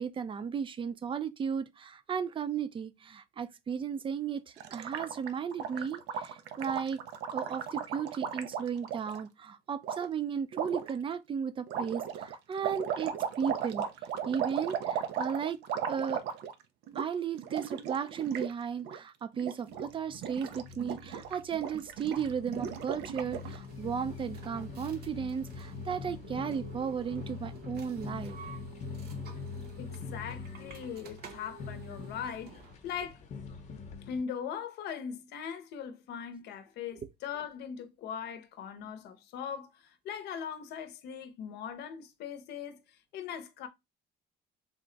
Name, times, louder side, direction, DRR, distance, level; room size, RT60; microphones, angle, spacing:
voice 1, 0.0-7.0 7.3-13.8 14.3-16.2 16.9-28.4, right 7 dB, 30° right, 0.4 m, -35 dB
Gurgling, 4.6-9.2 9.8-10.0 10.5-10.9 11.7-16.6 16.9-17.1 17.3-18.5 18.8-19.0 19.3-19.9 20.1-23.6, right 8 dB, 85° right, 0.5 m, -36 dB
sound 1, 19.7-34.2, left 5 dB, 45° left, 0.8 m, -44 dB
sound 2, 23.4-32.8, right 5 dB, 65° right, 0.9 m, -52 dB
voice 2, 29.8-32.5 32.8-33.3 34.0-42.8 43.1-43.7, left 7 dB, 75° left, 0.7 m, -40 dB
3.5 x 2.1 x 3.7 m
cardioid pair, 110°, 17 cm